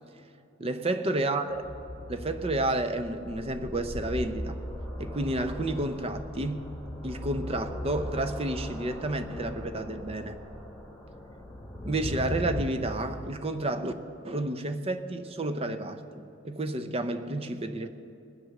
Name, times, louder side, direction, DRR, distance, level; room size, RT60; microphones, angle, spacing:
voice 1, 0.6-1.6 2.1-4.6 5.0-6.7 7.0-10.4 11.8-13.9 14.2-17.9, right 2 dB, 30° right, 9 dB, 0.7 m, -31 dB
sound 1, 1.5-12.6, left 1 dB, 10° left, 3.0 m, -38 dB
20.0 x 7.7 x 6.5 m, 2.7 s
head